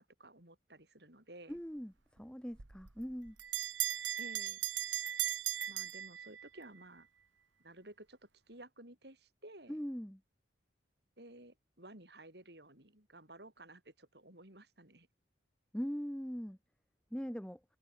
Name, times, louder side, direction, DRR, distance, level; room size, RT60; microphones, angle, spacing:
voice 1, 0.0-1.6 4.2-4.6 5.7-7.1 7.6-8.2 8.5-9.8 11.2-15.1, right 1 dB, 60° right, 6.4 m, -54 dB
voice 2, 1.5-3.4 9.7-10.2 15.7-16.6 17.1-17.6, equal, 5° left, 1.5 m, -41 dB
Bell, 2.6-6.7, right 12 dB, 85° right, 1.5 m, -37 dB
head